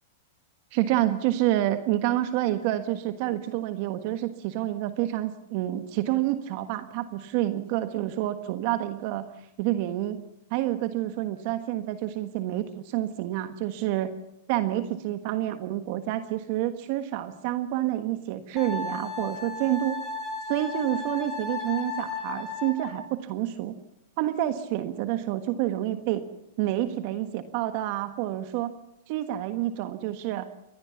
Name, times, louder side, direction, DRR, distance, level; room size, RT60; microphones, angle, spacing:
voice 1, 0.7-9.2 9.6-10.2 10.5-14.1 14.5-20.0 20.5-23.8 24.2-26.2 26.6-28.7 29.1-30.5, right 14 dB, 55° right, 9 dB, 1.4 m, -28 dB
Wind instrument woodwind instrument, 18.6-23.0, left 4 dB, 15° left, 5.2 m, -34 dB
29.5 x 12.5 x 7.2 m, 0.83 s
hypercardioid pair, 120°, 0 cm